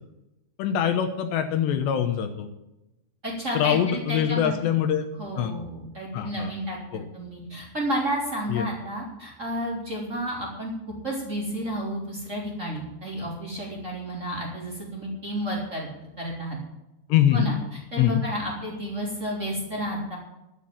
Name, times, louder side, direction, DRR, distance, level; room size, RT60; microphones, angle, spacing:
voice 1, 0.6-2.5 3.5-5.0 5.4-5.5 6.1-6.5 6.9-7.0 8.5-8.7 17.1-17.5 18.0-18.2, left 9 dB, 75° left, 7 dB, 3.0 m, -23 dB
voice 2, 3.2-4.5 5.2-6.8 7.1-10.7 11.0-16.6 17.3-17.5 17.9-20.2, right 1 dB, 20° right, -3 dB, 3.3 m, -31 dB
11.5 x 9.6 x 8.7 m, 0.92 s
omnidirectional pair, 5.3 m